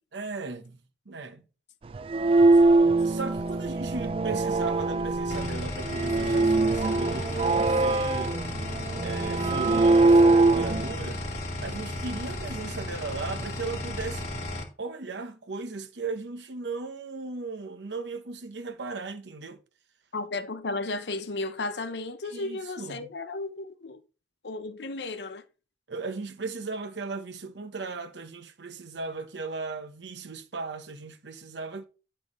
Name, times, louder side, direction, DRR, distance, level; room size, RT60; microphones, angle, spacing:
voice 1, 0.1-0.8 1.1-1.5 3.0-8.4 9.0-11.2 11.6-14.3 14.8-19.6 22.2-23.1 25.9-31.8, right 3 dB, 85° right, 1.0 m, -37 dB
sound 1, 1.9-10.9, right 2 dB, 30° right, 0.3 m, -23 dB
sound 2, 5.3-14.6, left 1 dB, 40° left, 1.6 m, -34 dB
voice 2, 20.1-24.0 24.4-25.4, left 2 dB, 75° left, 0.8 m, -34 dB
9.9 x 3.4 x 5.2 m
head